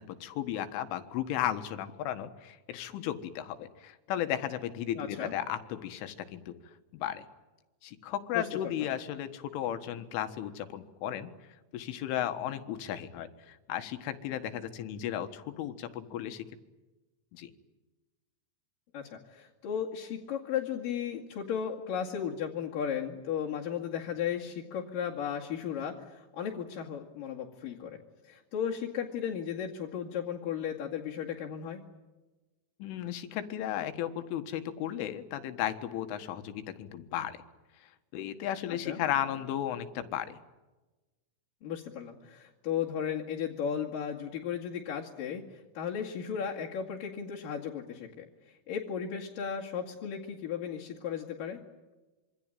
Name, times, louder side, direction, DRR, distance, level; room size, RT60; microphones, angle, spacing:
voice 1, 0.0-6.5 6.9-7.3 7.8-11.3 11.7-16.5 17.3-17.5 32.8-37.4 38.1-40.4, left 11 dB, 85° left, 9 dB, 4.0 m, -35 dB
voice 2, 5.0-5.3 8.3-8.4 18.9-31.8 38.7-39.0 41.6-51.6, left 8 dB, 55° left, -3 dB, 3.5 m, -35 dB
26.5 x 24.5 x 9.1 m, 1.1 s
omnidirectional pair, 5.4 m